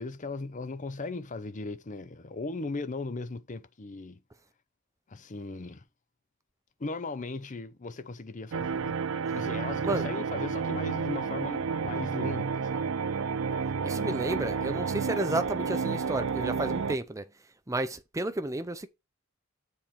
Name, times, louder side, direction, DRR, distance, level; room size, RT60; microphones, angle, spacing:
voice 1, 0.0-4.2 5.1-5.8 6.8-8.9 9.3-12.8, left 3 dB, 35° left, 0.6 m, -37 dB
sound 1, 8.5-16.9, right 5 dB, 75° right, 0.5 m, -31 dB
voice 2, 13.8-17.3 17.7-18.9, right 2 dB, 15° right, 0.6 m, -32 dB
7.2 x 4.3 x 5.8 m
head